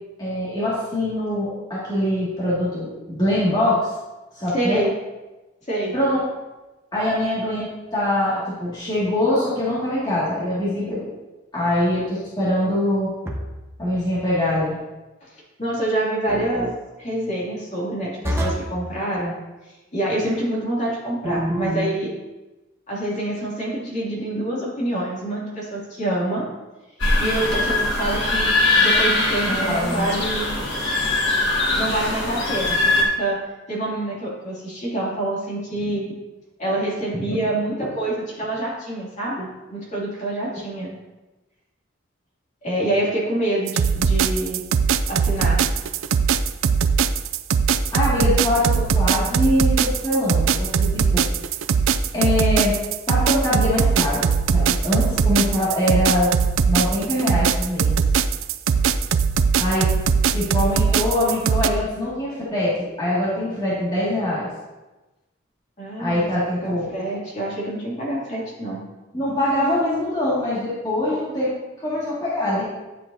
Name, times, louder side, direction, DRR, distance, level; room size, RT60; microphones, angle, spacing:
voice 1, 0.2-3.9 4.3-4.8 5.9-6.2 6.9-11.1 11.5-13.1 13.8-14.8 29.5-30.1 47.9-51.2 52.1-52.8 53.1-54.2 54.5-56.3 56.7-57.9 59.6-59.9 60.3-64.5 66.0-66.9 69.1-71.5 71.8-72.6, left 1 dB, 20° left, -10 dB, 2.1 m, -23 dB
voice 2, 4.5-4.9 5.7-5.9 15.2-15.3 15.6-16.7 17.0-19.3 19.9-22.1 22.9-26.4 27.2-28.5 28.8-30.5 31.7-33.4 33.7-36.1 36.6-40.9 42.6-44.6 45.1-45.6 65.8-66.3 66.6-68.8, right 1 dB, 40° left, -5 dB, 2.5 m, -26 dB
sound 1, 13.2-13.7 16.3-16.7 18.2-18.8 21.2-22.0, right 1 dB, 15° right, 1.0 m, -26 dB
sound 2, 27.0-33.0, left 2 dB, 65° left, 1.8 m, -21 dB
sound 3, 43.7-61.7, right 6 dB, 85° right, 0.4 m, -20 dB
10.5 x 7.4 x 2.7 m, 1.1 s
head